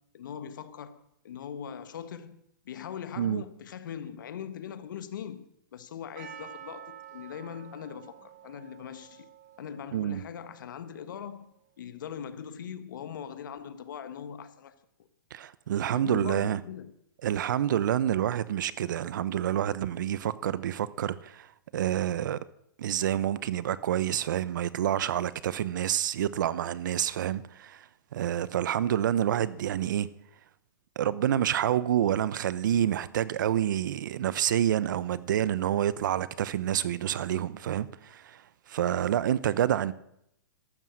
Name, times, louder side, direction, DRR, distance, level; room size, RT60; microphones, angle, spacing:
voice 1, 0.1-5.5 5.7-9.3 9.6-14.7 15.9-16.9, left 8 dB, 70° left, 1.6 m, -41 dB
Percussion, 6.2-11.1, right 10 dB, 50° right, 1.9 m, -49 dB
voice 2, 9.9-10.2 15.3-16.6 17.2-21.5 21.7-22.4 22.8-27.8 28.1-30.1 31.0-38.4 38.7-39.9, right 11 dB, 65° right, 0.8 m, -28 dB
13.5 x 12.0 x 6.4 m
hypercardioid pair, 140°, 11 cm